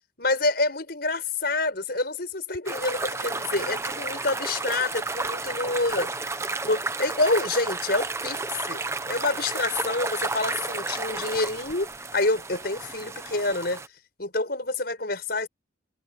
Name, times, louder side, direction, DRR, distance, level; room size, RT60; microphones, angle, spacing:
voice 1, 0.2-6.1 6.6-8.8 9.1-13.8 14.2-15.5, left 2 dB, 55° left, 6.2 m, -27 dB
sound 1, 2.7-13.9, right 3 dB, 15° right, 0.9 m, -32 dB
head